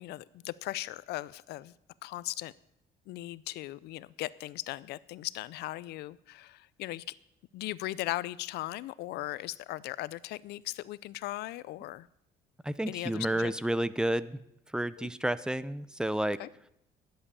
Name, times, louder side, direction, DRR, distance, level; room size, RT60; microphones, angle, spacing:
voice 1, 0.0-1.7 2.0-2.5 3.1-7.0 7.5-12.1 12.9-13.5 15.0-15.1 16.4-16.5, left 17 dB, 75° left, 20 dB, 0.5 m, -38 dB
voice 2, 12.6-14.4 14.7-16.4, right 1 dB, 5° right, 17 dB, 0.4 m, -30 dB
11.0 x 7.7 x 6.9 m, 0.79 s
cardioid pair, 110°, 17 cm